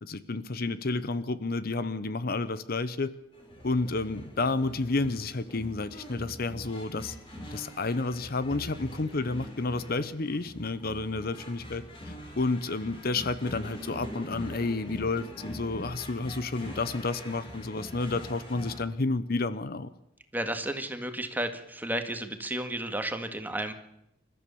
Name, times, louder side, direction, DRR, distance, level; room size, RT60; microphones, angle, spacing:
voice 1, 0.0-3.1 3.6-7.2 7.5-19.9, left 3 dB, 55° left, 14 dB, 0.9 m, -31 dB
sound 1, 3.3-18.8, equal, 30° left, 5.6 m, -43 dB
voice 2, 20.3-23.7, right 1 dB, 10° right, 7 dB, 1.9 m, -32 dB
28.0 x 14.0 x 7.1 m, 0.81 s
head